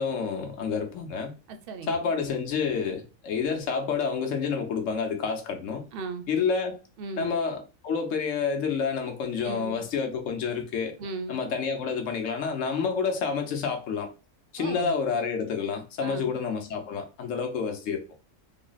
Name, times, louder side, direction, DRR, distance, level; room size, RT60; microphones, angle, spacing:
voice 1, 0.0-1.3 1.9-5.9 6.3-6.8 7.2-11.0 11.3-14.1 14.5-18.0, left 5 dB, 65° left, 1.1 m, -29 dB
voice 2, 1.5-2.0 5.9-6.2 7.0-7.4 9.4-9.8 11.0-11.4 14.6-14.9 16.0-16.4, right 3 dB, 60° right, 0.6 m, -37 dB
3.7 x 2.0 x 3.9 m
omnidirectional pair, 1.5 m